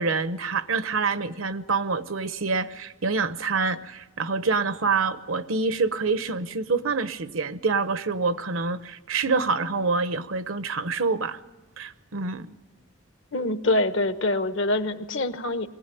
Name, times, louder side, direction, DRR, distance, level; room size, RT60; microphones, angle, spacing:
voice 1, 0.0-11.4 11.8-12.5, right 4 dB, 70° right, 13 dB, 0.9 m, -26 dB
voice 2, 13.3-15.7, left 2 dB, 60° left, 10 dB, 1.1 m, -25 dB
22.5 x 17.0 x 9.2 m, 1.2 s
head